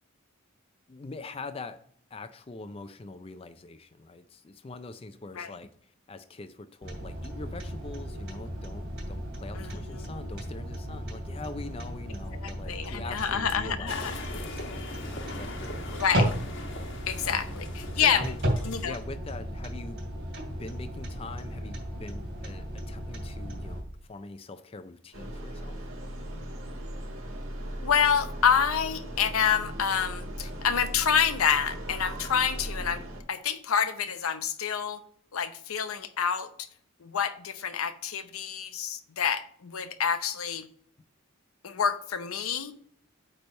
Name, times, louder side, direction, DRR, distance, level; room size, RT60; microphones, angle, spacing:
voice 1, 0.9-1.8 2.1-16.0 17.2-17.6 17.9-18.4 18.7-20.1 20.4-23.8 24.1-25.9, left 3 dB, 25° left, 10 dB, 0.4 m, -43 dB
sound 1, 6.8-23.8, equal, 55° right, 2.7 m, -35 dB
voice 2, 9.6-10.1 12.4-14.1 15.9-16.3 17.1-17.6 18.0-18.2 18.6-19.0 27.8-35.0 35.3-36.5 37.0-40.7 41.6-42.7, left 7 dB, 90° left, 10 dB, 0.7 m, -28 dB
sound 2, 13.9-18.9, left 2 dB, 55° left, 1.1 m, -42 dB
sound 3, 25.1-33.2, right 1 dB, 80° right, 1.5 m, -38 dB
8.6 x 3.3 x 5.2 m, 0.63 s
head